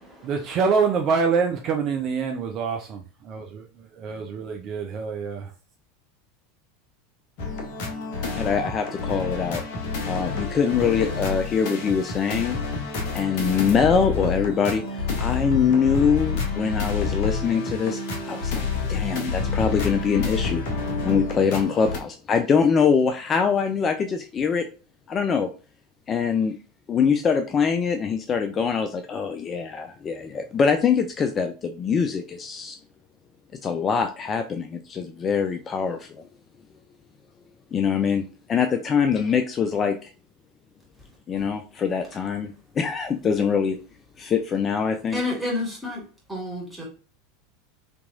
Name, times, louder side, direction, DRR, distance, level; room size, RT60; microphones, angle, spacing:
voice 1, 0.2-5.5, right 5 dB, 40° right, 0.4 m, -26 dB
sound 1, 7.4-22.0, left 4 dB, 50° left, 0.8 m, -28 dB
voice 2, 8.4-9.6 10.1-12.6 13.1-18.0 18.3-18.6 18.9-20.7 21.0-24.6 25.1-25.5 26.1-26.6 26.9-32.8 33.6-36.3 37.7-40.0 41.3-43.8 44.2-45.2, left 6 dB, 30° left, 0.3 m, -23 dB
voice 3, 45.1-46.0 46.3-46.8, left 2 dB, 5° right, 1.8 m, -30 dB
3.5 x 2.9 x 2.5 m
figure-of-eight pair, 80°, 0 cm